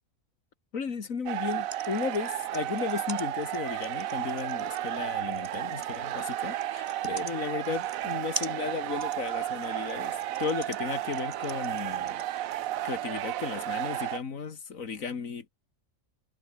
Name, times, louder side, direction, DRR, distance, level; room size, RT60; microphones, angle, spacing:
voice 1, 0.7-12.2 12.8-15.5, left 5 dB, 70° left, 2.2 m, -35 dB
sound 1, 1.3-12.7, right 3 dB, 25° right, 1.9 m, -43 dB
sound 2, 1.3-14.2, right 12 dB, 75° right, 1.1 m, -33 dB
omnidirectional pair, 1.5 m